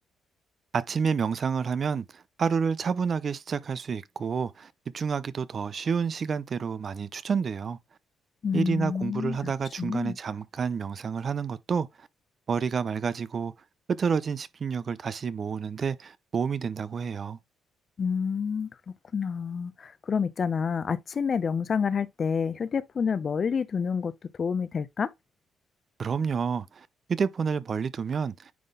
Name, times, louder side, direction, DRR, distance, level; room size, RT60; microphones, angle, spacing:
voice 1, 0.7-7.8 8.5-12.1 12.5-13.5 13.9-17.4 26.0-28.5, right 6 dB, 45° right, 0.5 m, -29 dB
voice 2, 8.4-9.5 9.8-10.1 18.0-18.7 19.1-24.1 24.4-25.1, left 6 dB, 45° left, 0.7 m, -28 dB
9.4 x 3.7 x 3.8 m
cardioid pair, 90°, 0 cm